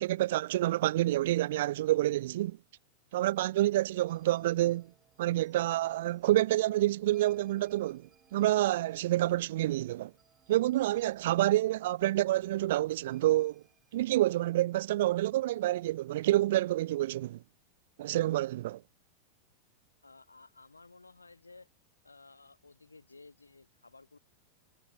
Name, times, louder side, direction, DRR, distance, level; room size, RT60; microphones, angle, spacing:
voice 1, 0.0-2.6 3.1-4.9 5.2-10.1 10.5-13.6 13.9-17.4 18.0-18.8, right 15 dB, 55° right, 0.3 m, -28 dB
sound 1, 3.7-14.8, right 8 dB, 25° right, 2.5 m, -66 dB
voice 2, 20.0-21.7 22.0-24.2, left 3 dB, 80° left, 1.4 m, -55 dB
figure-of-eight pair, 90°, 0 cm